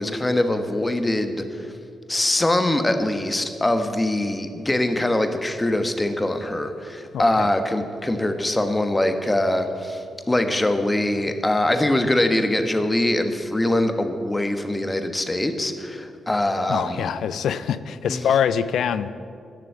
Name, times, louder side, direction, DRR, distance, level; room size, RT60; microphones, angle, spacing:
voice 1, 0.0-1.7 2.1-17.1 18.1-18.2, left 1 dB, 20° left, 7 dB, 1.3 m, -23 dB
voice 2, 7.1-7.5 16.7-19.1, left 8 dB, 75° left, 15 dB, 0.4 m, -24 dB
10.5 x 6.8 x 9.3 m, 2.4 s
supercardioid pair, 45°, 0 cm